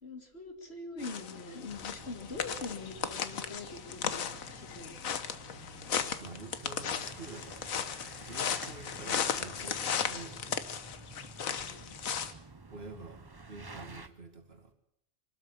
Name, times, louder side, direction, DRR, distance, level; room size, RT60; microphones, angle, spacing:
voice 1, 0.0-4.9 11.4-12.0, left 3 dB, 50° left, 2.6 m, -43 dB
sound 1, 1.0-12.3, left 7 dB, 85° left, 1.5 m, -36 dB
sound 2, 1.7-14.1, right 3 dB, 20° right, 0.8 m, -51 dB
voice 2, 6.2-10.7 12.7-14.7, right 3 dB, 45° right, 2.4 m, -48 dB
24.0 x 13.0 x 8.6 m
omnidirectional pair, 1.4 m